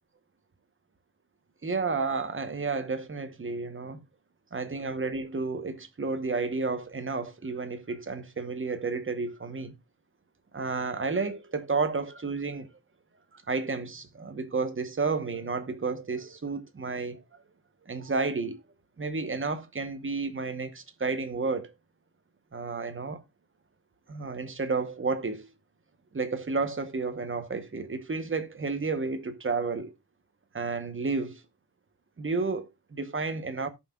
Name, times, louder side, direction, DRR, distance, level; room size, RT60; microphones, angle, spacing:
voice 1, 1.6-4.0 4.5-9.8 10.5-12.7 13.3-17.2 17.9-18.6 19.0-21.7 22.5-23.2 24.1-25.5 26.1-29.9 30.5-31.4 32.2-33.7, right 4 dB, 30° right, 1.0 m, -31 dB
17.0 x 5.7 x 2.3 m
wide cardioid pair, 135°, 43 cm